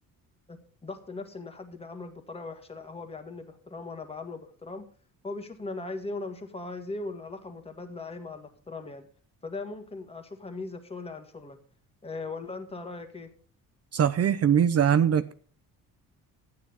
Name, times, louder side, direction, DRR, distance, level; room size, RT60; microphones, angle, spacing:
voice 1, 0.5-4.8 5.2-9.1 9.4-11.6 12.0-13.3, left 3 dB, 15° left, 5 dB, 1.9 m, -39 dB
voice 2, 13.9-15.3, right 8 dB, 45° right, 12 dB, 0.7 m, -22 dB
12.5 x 9.5 x 5.5 m, 0.41 s
cardioid pair, 135°, 35 cm